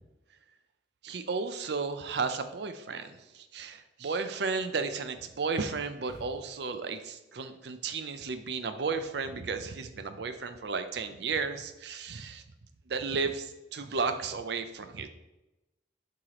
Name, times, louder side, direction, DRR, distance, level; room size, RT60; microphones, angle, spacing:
voice 1, 1.0-12.4 12.9-15.1, right 4 dB, 60° right, 9 dB, 0.5 m, -33 dB
sound 1, 6.0-7.0, equal, 5° right, 1.6 m, -51 dB
7.6 x 4.8 x 3.0 m, 1.0 s
head